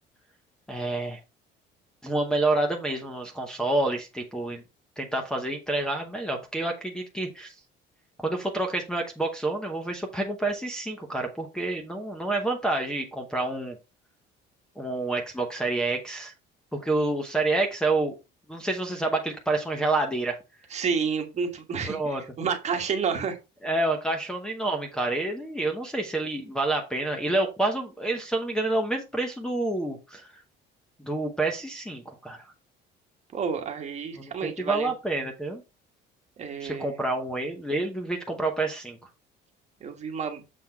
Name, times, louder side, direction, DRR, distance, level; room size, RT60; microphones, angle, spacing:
voice 1, 0.7-1.2 2.0-4.6 5.0-7.5 8.2-13.8 14.8-16.3 16.7-18.2 18.5-20.4 21.9-22.2 23.6-30.3 31.0-32.5 34.2-34.3 34.6-35.6 36.6-39.1, right 2 dB, 5° left, -1 dB, 0.9 m, -28 dB
voice 2, 20.7-23.4 33.3-34.9 36.4-37.0 39.8-40.4, right 6 dB, 35° right, 4 dB, 1.4 m, -30 dB
7.3 x 4.2 x 4.5 m, 0.27 s
cardioid pair, 180°, 20 cm